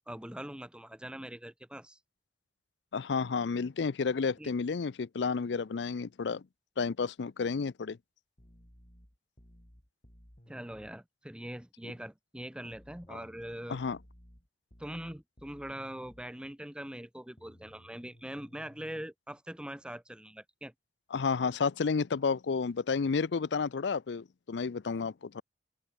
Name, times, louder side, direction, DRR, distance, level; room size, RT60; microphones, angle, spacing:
voice 1, 0.1-2.0 4.4-4.5 10.5-13.8 14.8-20.7, right 1 dB, 5° right, 0.9 m, -42 dB
voice 2, 2.9-6.4 6.8-8.0 13.7-14.0 21.1-25.4, left 5 dB, 75° left, 0.5 m, -31 dB
sound 1, 8.4-11.0 12.7-16.3 17.4-19.0, equal, 35° left, 3.7 m, -58 dB
open air
head